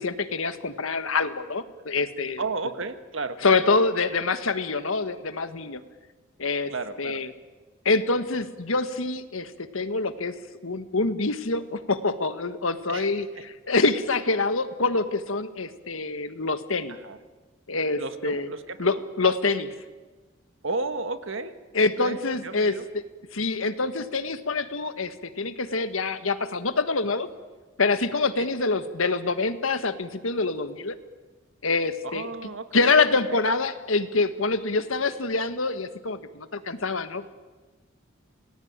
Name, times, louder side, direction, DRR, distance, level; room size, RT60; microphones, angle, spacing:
voice 1, 0.0-2.4 3.4-5.8 6.4-6.7 7.0-7.3 7.8-10.3 10.6-17.0 17.7-18.5 18.8-19.7 21.7-23.0 23.3-27.3 27.8-31.0 31.6-32.3 32.7-37.3, left 3 dB, 80° left, 10 dB, 1.6 m, -26 dB
voice 2, 2.4-3.8 6.7-7.2 12.9-13.4 16.9-17.2 18.0-19.0 20.6-22.8 28.4-28.5 32.0-33.4, right 3 dB, 70° right, 9 dB, 1.6 m, -34 dB
27.5 x 19.0 x 8.9 m, 1.3 s
head